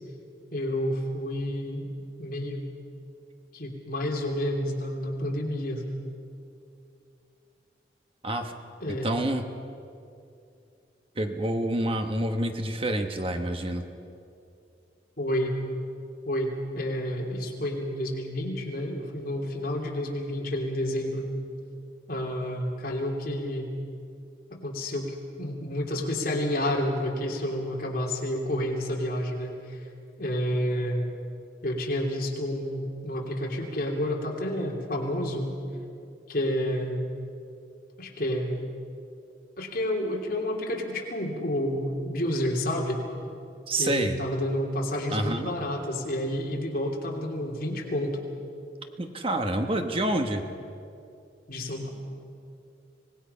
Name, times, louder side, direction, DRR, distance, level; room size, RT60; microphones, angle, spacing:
voice 1, 0.5-1.9 2.2-2.6 3.5-5.8 8.8-9.2 15.2-15.5 16.2-21.3 22.1-23.7 24.5-29.8 30.2-31.1 31.6-35.5 36.3-37.1 38.0-38.6 39.6-43.0 43.8-48.2 51.5-51.9, left 1 dB, 50° left, -1 dB, 3.1 m, -30 dB
voice 2, 8.9-9.5 11.2-13.8 43.7-44.2 45.1-45.6 49.0-50.4, right 1 dB, 30° right, 5 dB, 1.1 m, -28 dB
25.0 x 19.5 x 5.6 m, 2.6 s
head